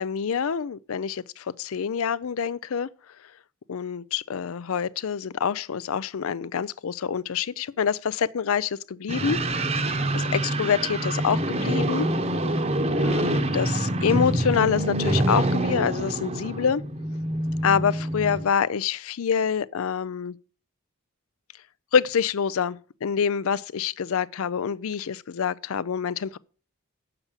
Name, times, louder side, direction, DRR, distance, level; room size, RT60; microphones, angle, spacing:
voice 1, 0.0-2.9 3.7-9.4 9.9-12.1 13.0-16.8 17.6-20.4 21.9-26.4, left 7 dB, 75° left, 0.4 m, -26 dB
sound 1, 9.1-18.4, right 1 dB, 30° right, 0.9 m, -26 dB
8.1 x 6.9 x 7.2 m
head